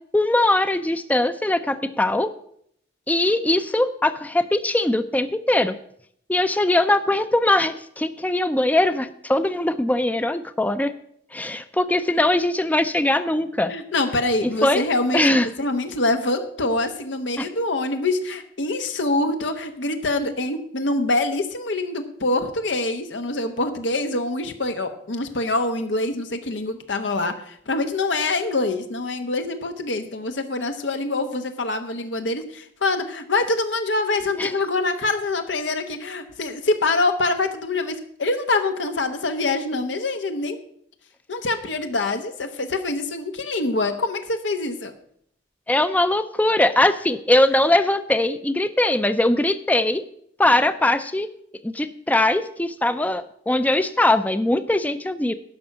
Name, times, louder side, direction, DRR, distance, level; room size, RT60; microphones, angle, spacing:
voice 1, 0.1-2.3 3.1-5.8 6.3-10.9 11.3-13.7 14.6-14.9 15.1-15.5 17.4-17.5 34.4-34.5 45.7-50.0 50.4-51.3 51.6-55.3, left 1 dB, 10° left, 11 dB, 0.4 m, -21 dB
voice 2, 13.7-40.6 41.3-44.9, left 2 dB, 90° left, 6 dB, 1.1 m, -25 dB
11.0 x 5.9 x 8.0 m, 0.67 s
head